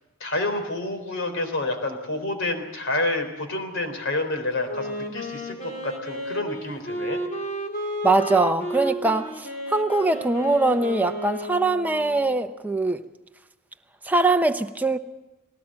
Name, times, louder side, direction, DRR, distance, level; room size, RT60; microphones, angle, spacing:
voice 1, 0.2-7.2, left 2 dB, 60° left, 3.8 m, -28 dB
Wind instrument woodwind instrument, 4.6-12.4, equal, 40° left, 3.4 m, -33 dB
voice 2, 8.0-13.0 14.0-15.0, right 2 dB, 10° right, 0.8 m, -22 dB
19.5 x 18.0 x 7.6 m
head